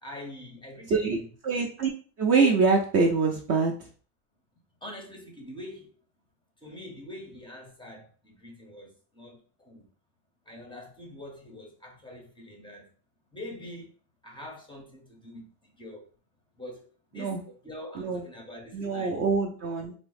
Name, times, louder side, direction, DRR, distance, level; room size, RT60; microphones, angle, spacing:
voice 1, 0.0-1.3 4.8-5.9 6.6-8.9 9.2-9.4 9.7-9.8 10.5-12.9 13.3-13.9 14.2-15.4 15.8-16.0 16.6-16.8 17.1-17.4 17.6-19.2, left 1 dB, 10° left, 0.5 m, -44 dB
voice 2, 0.9-1.9 2.2-3.8 17.2-17.4 17.9-18.2 18.7-19.9, right 4 dB, 35° right, 0.4 m, -25 dB
3.5 x 2.0 x 3.2 m
supercardioid pair, 120°, 49 cm